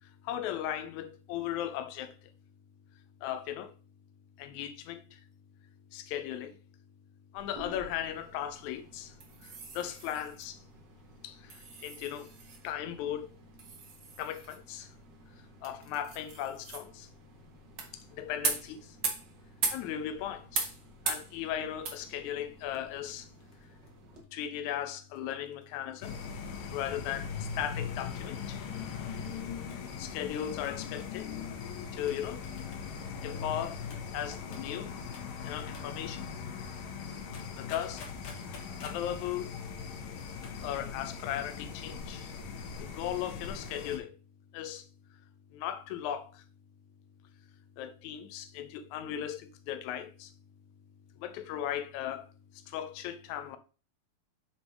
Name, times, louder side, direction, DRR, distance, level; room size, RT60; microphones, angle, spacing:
voice 1, 0.0-2.3 3.2-3.7 4.4-5.2 5.9-6.6 7.3-9.1 9.4-10.6 11.2-12.3 12.6-13.3 14.2-14.9 15.6-17.1 17.9-19.0 19.7-20.7 21.0-23.3 24.3-26.2 26.7-28.7 29.6-31.3 31.9-32.5 33.2-33.8 34.1-34.9 35.4-36.3 37.5-38.1 38.5-39.6 40.6-42.3 42.8-44.2 44.5-44.9 45.5-46.4 47.8-50.3 51.2-53.6, left 10 dB, 90° left, 1.6 m, -37 dB
sound 1, 7.4-24.2, right 4 dB, 90° right, 0.9 m, -41 dB
sound 2, 22.7-26.1 26.9-27.4 27.6-27.7 28.2-28.5 29.7-29.9 30.6-31.3 32.1-32.9 33.9-34.1 34.5-34.7 35.1-35.4 35.7-36.0 37.3-39.1 40.2-40.6 40.9-41.0, left 3 dB, 55° left, 1.6 m, -53 dB
sound 3, 26.0-44.0, left 6 dB, 70° left, 2.6 m, -40 dB
7.1 x 4.4 x 4.5 m
omnidirectional pair, 4.1 m